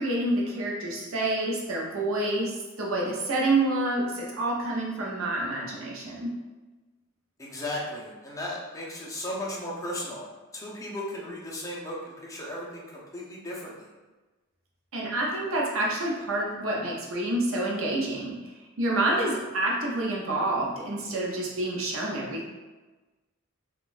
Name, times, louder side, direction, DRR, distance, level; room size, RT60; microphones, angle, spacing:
voice 1, 0.0-6.3 14.9-18.5 18.8-22.5, right 2 dB, 75° right, -2 dB, 0.6 m, -28 dB
voice 2, 7.4-13.9, left 1 dB, 15° left, -5 dB, 0.7 m, -36 dB
3.7 x 2.3 x 2.5 m, 1.2 s
head